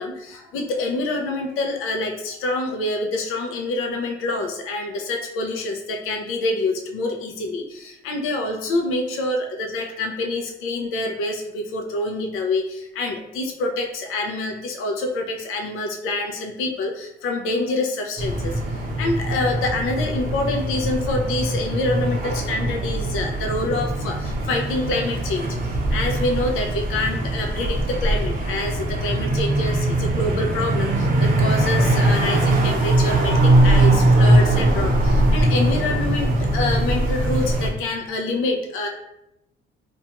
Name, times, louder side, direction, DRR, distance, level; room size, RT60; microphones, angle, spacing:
voice 1, 0.0-18.5 19.0-25.5 25.9-38.9, left 2 dB, 80° left, 3 dB, 0.4 m, -26 dB
sound 1, 18.2-37.7, right 1 dB, 45° right, 0.5 m, -21 dB
2.4 x 2.2 x 2.8 m, 0.83 s
cardioid pair, 140°, 21 cm